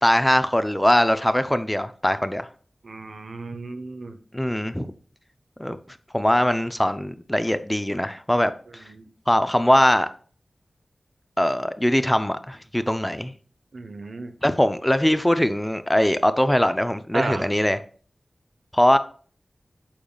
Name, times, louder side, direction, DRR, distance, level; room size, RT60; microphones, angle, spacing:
voice 1, 0.0-2.5 4.3-4.9 5.6-5.8 6.1-8.8 9.3-10.1 11.4-13.3 14.4-17.8 18.7-19.0, left 1 dB, 10° left, 0.6 m, -21 dB
voice 2, 2.8-4.2 8.8-9.0 13.7-14.3 17.1-17.4, right 3 dB, 75° right, 1.1 m, -32 dB
8.9 x 7.0 x 2.4 m
wide cardioid pair, 60°, 0 cm